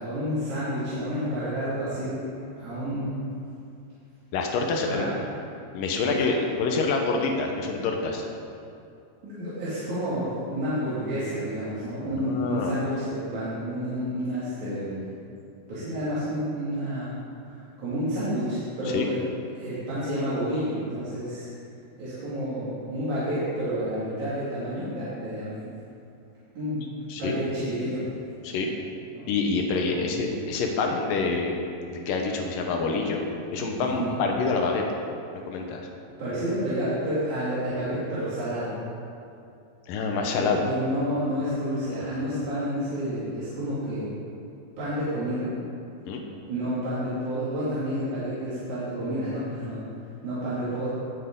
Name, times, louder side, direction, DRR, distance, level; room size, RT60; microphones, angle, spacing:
voice 1, 0.0-2.3 2.6-3.2 4.9-5.2 6.1-6.2 9.2-15.1 15.7-17.1 17.5-19.2 19.5-21.5 22.0-25.7 26.6-28.0 29.1-29.3 29.9-30.1 33.8-34.2 36.2-38.7 40.3-44.1 44.8-45.5 46.5-49.8 50.2-50.9, equal, 50° right, -12 dB, 3.4 m, -30 dB
voice 2, 4.3-5.0 5.7-8.3 12.1-12.7 18.9-19.1 27.1-27.4 28.4-28.7 29.3-31.6 31.9-33.2 33.5-34.8 35.5-35.8 39.9-40.7 46.1-46.2, left 4 dB, 75° left, 2 dB, 2.0 m, -26 dB
18.0 x 8.1 x 3.8 m, 2.6 s
omnidirectional pair, 5.1 m